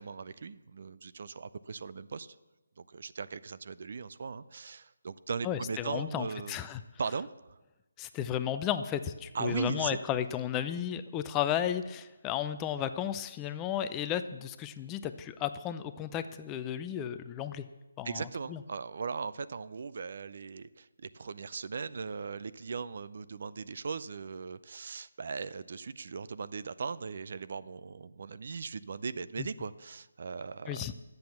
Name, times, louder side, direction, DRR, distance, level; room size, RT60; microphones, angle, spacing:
voice 1, 0.0-2.4 2.8-6.6 7.0-7.6 9.3-10.0 18.0-30.9, right 5 dB, 55° right, 15 dB, 0.4 m, -38 dB
voice 2, 5.4-6.8 8.0-17.6 18.0-18.6 29.4-29.5 30.7-30.9, left 10 dB, 15° left, 11 dB, 0.5 m, -34 dB
10.5 x 7.8 x 7.0 m, 1.1 s
figure-of-eight pair, 155°, 0 cm